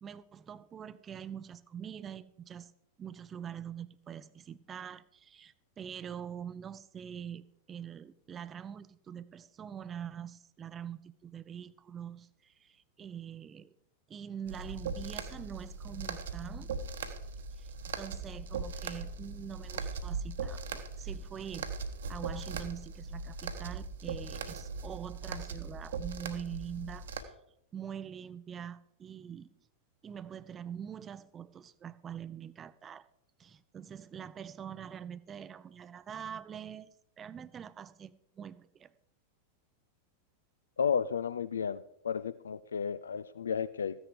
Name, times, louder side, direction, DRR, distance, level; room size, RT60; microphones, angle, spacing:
voice 1, 0.0-2.7 3.0-13.8 14.1-16.7 17.6-17.7 18.0-21.7 22.1-27.1 27.7-29.5 30.0-33.1 33.4-38.9, right 8 dB, 25° right, 16 dB, 0.6 m, -44 dB
sound 1, 14.5-27.2, right 4 dB, 65° right, 1.2 m, -39 dB
voice 2, 40.8-44.0, left 7 dB, 70° left, 16 dB, 0.4 m, -33 dB
14.5 x 10.0 x 5.0 m, 0.77 s
figure-of-eight pair, 90°, 0 cm